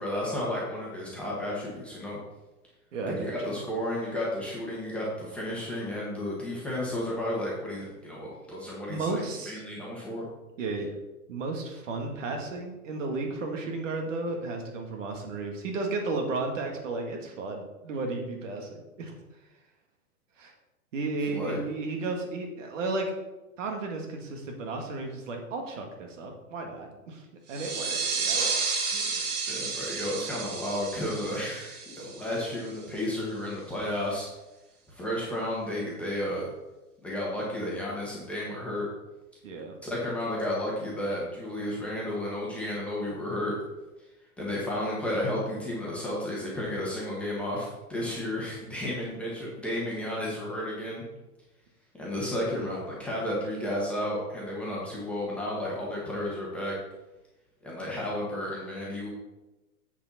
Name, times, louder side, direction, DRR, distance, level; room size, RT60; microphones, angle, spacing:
voice 1, 0.0-2.2 3.1-9.1 9.5-10.3 21.3-21.6 29.5-34.3 34.9-36.5 37.0-38.9 39.8-43.5 44.4-51.0 51.9-56.7 57.6-59.1, left 1 dB, 5° left, -6 dB, 1.6 m, -32 dB
voice 2, 2.9-3.3 8.9-9.6 10.6-10.9 11.3-19.2 20.4-20.5 20.9-23.1 23.6-27.2 27.5-28.5 28.9-29.1 39.4-39.7, right 3 dB, 55° right, 2 dB, 1.9 m, -33 dB
sound 1, 27.5-32.8, right 4 dB, 90° right, 2.0 m, -32 dB
7.8 x 6.9 x 4.2 m, 1.0 s
hypercardioid pair, 155°, 44 cm